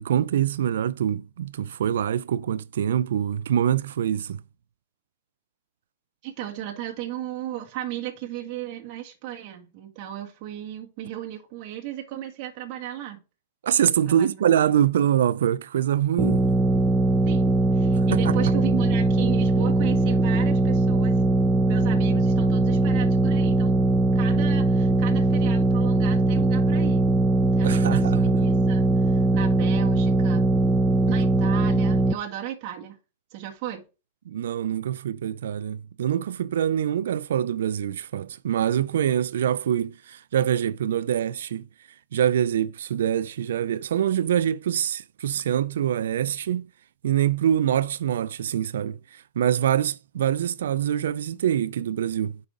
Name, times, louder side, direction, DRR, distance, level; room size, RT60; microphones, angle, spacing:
voice 1, 0.0-4.4 13.6-16.5 17.9-18.5 27.6-28.3 34.3-41.7 42.1-46.7 47.0-52.4, right 10 dB, 80° right, 0.3 m, -25 dB
voice 2, 6.2-13.2 14.1-14.4 17.2-21.3 21.6-23.8 24.1-27.1 27.5-30.5 31.1-33.0 33.3-33.8, right 12 dB, 50° right, 1.5 m, -35 dB
sound 1, 16.2-32.1, right 2 dB, 15° right, 0.6 m, -21 dB
7.9 x 5.4 x 3.7 m
hypercardioid pair, 130°, 0 cm